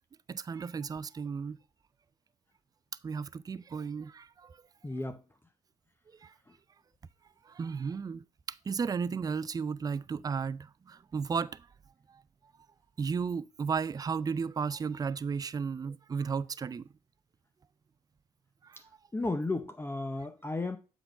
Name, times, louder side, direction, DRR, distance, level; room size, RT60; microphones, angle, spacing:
voice 1, 0.3-1.6 3.0-4.6 6.2-6.3 7.5-11.7 13.0-16.8 18.6-18.8, right 5 dB, 25° right, 0.4 m, -34 dB
voice 2, 4.8-5.2 19.1-20.8, left 2 dB, 15° left, 0.7 m, -33 dB
7.8 x 3.9 x 4.6 m
hypercardioid pair, 50°, 16 cm